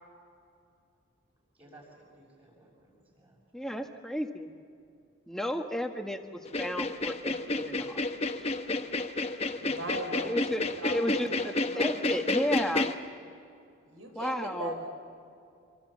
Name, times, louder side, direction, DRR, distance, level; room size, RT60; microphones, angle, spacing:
voice 1, 1.5-3.7, right 1 dB, 25° right, -3 dB, 6.7 m, -57 dB
voice 2, 3.5-4.5 5.3-8.0 8.3-8.5 10.2-10.6 10.9-12.9 14.1-14.8, equal, ahead, 5 dB, 1.4 m, -33 dB
sound 1, 6.5-12.9, left 2 dB, 30° left, 1.2 m, -30 dB
voice 3, 9.6-10.3 10.8-12.1 13.8-14.9, right 1 dB, 85° right, 3 dB, 5.6 m, -39 dB
26.0 x 24.5 x 7.4 m, 2.5 s
head